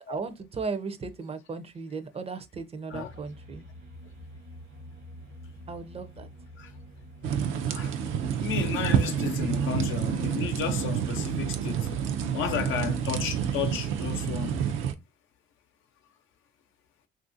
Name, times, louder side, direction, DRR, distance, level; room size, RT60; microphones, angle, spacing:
voice 1, 0.0-3.6 5.7-6.3, right 4 dB, 30° right, 0.5 m, -36 dB
sound 1, 2.9-12.8, equal, 70° right, 0.9 m, -49 dB
sound 2, 7.2-14.9, right 8 dB, 90° right, 0.5 m, -28 dB
voice 2, 8.4-12.0 12.3-14.6, left 8 dB, 90° left, 0.6 m, -33 dB
3.0 x 2.5 x 2.5 m
cardioid pair, 90°, 20 cm